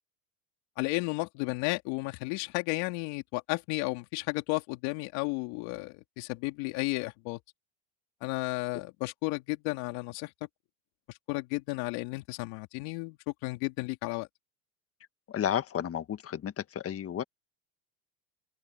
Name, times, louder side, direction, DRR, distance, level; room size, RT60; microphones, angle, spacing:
voice 1, 0.8-7.4 8.2-10.3 11.3-14.3, left 25 dB, 70° left, 2.9 m, -33 dB
voice 2, 15.3-17.2, left 9 dB, 35° left, 1.6 m, -32 dB
supercardioid pair, 100°, 41 cm